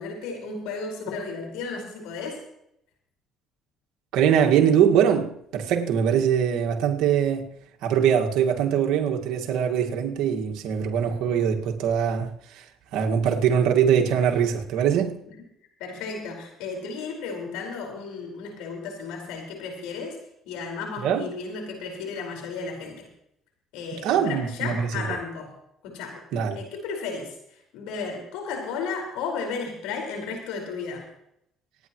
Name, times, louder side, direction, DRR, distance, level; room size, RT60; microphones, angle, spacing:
voice 1, 0.0-2.4 15.3-15.4 15.8-20.2 20.4-23.1 23.7-25.5 25.8-26.2 26.5-31.1, left 4 dB, 90° left, 4.9 m, -34 dB
voice 2, 4.1-7.5 7.8-12.3 12.9-15.2 21.0-21.3 24.0-24.9 26.3-26.6, right 8 dB, 80° right, 1.8 m, -22 dB
26.5 x 9.9 x 3.1 m
supercardioid pair, 85°, 0 cm